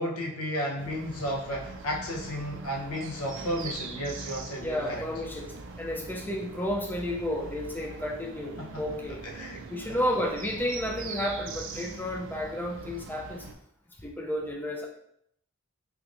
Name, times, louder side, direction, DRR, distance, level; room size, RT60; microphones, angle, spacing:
voice 1, 0.0-5.0 8.6-8.9 9.2-9.7, equal, 75° left, -1 dB, 0.8 m, -33 dB
sound 1, 0.8-13.5, right 3 dB, 55° right, 0.4 m, -42 dB
voice 2, 4.6-5.5 5.8-9.2 9.7-13.4 14.0-14.9, equal, 10° left, 0 dB, 0.4 m, -32 dB
3.4 x 3.1 x 2.5 m, 0.71 s
head